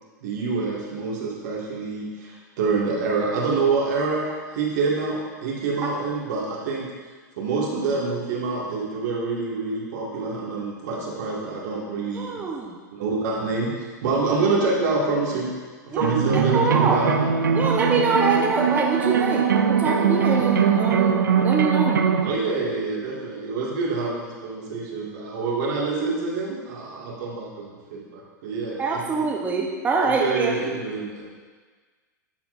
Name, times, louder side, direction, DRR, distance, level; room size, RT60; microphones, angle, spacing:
voice 1, 0.2-4.2 4.5-6.8 7.4-12.4 12.9-13.7 14.0-15.5 15.9-17.8 22.2-29.2 30.0-31.2, right 4 dB, 65° right, -4 dB, 2.1 m, -26 dB
voice 2, 12.1-12.8 15.9-16.1 16.5-17.0 17.6-22.0 28.8-30.5, right 4 dB, 15° right, -1 dB, 0.7 m, -24 dB
sound 1, 16.0-22.3, right 7 dB, 90° right, 0.5 m, -21 dB
12.0 x 4.5 x 2.6 m, 1.4 s
hypercardioid pair, 110°, 10 cm